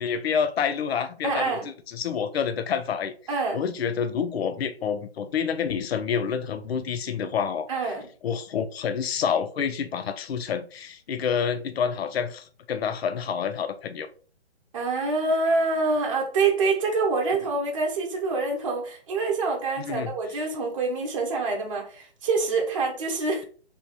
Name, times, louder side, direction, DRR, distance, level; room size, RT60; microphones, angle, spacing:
voice 1, 0.0-1.6 1.9-3.1 3.5-7.9 8.2-14.1 19.8-20.1, left 7 dB, 65° left, 0.5 m, -28 dB
voice 2, 1.2-1.7 3.3-3.6 7.7-8.1 14.7-23.4, right 3 dB, 30° right, 0.8 m, -26 dB
3.5 x 2.2 x 4.2 m
hypercardioid pair, 160°, 34 cm